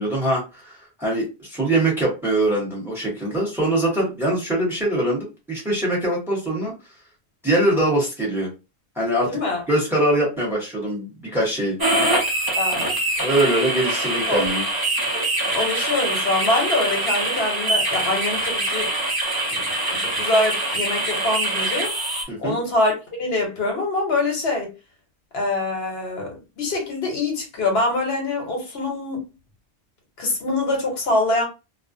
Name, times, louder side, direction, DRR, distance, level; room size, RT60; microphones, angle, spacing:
voice 1, 0.0-6.7 7.4-8.5 9.0-9.4 9.7-11.8 13.2-14.6 22.3-22.6, right 1 dB, ahead, 0.9 m, -23 dB
voice 2, 9.3-9.6 12.6-12.9 14.3-14.4 15.1-18.9 19.5-19.6 20.0-21.9 22.4-24.7 25.3-29.2 30.2-31.4, left 2 dB, 70° left, 1.0 m, -24 dB
sound 1, 11.8-22.2, right 1 dB, 30° right, 0.4 m, -24 dB
2.4 x 2.0 x 2.6 m
omnidirectional pair, 1.1 m